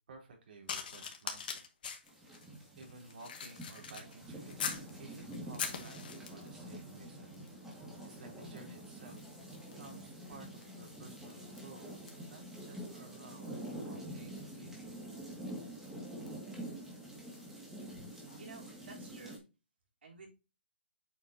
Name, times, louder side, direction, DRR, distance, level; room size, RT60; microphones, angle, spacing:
voice 1, 0.1-1.6 2.8-7.4 7.7-9.3 9.7-12.0 12.3-13.5 13.8-14.7, right 3 dB, 60° right, 2 dB, 3.7 m, -54 dB
sound 1, 0.7-4.9 5.3-6.6 7.3-7.6 7.9-17.6 18.3-18.4, left 6 dB, 55° left, 1.9 m, -46 dB
sound 2, 2.0-19.4, right 1 dB, 5° right, 2.2 m, -47 dB
voice 2, 17.9-19.4 20.0-20.3, right 3 dB, 75° right, -1 dB, 3.9 m, -53 dB
8.0 x 5.6 x 2.9 m, 0.28 s
hypercardioid pair, 155°, 6 cm